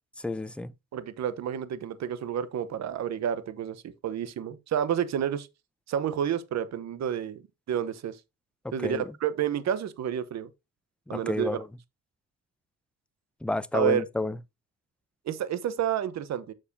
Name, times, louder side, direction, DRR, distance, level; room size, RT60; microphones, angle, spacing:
voice 1, 0.2-0.7 8.8-9.1 11.1-11.6 13.4-14.3, left 2 dB, 5° left, 0.5 m, -30 dB
voice 2, 0.9-5.5 5.9-7.4 7.7-8.2 8.7-10.5 11.1-11.6 13.7-14.0 15.3-16.5, right 9 dB, 60° right, 1.0 m, -30 dB
7.4 x 6.6 x 2.7 m
cardioid pair, 90°, 30 cm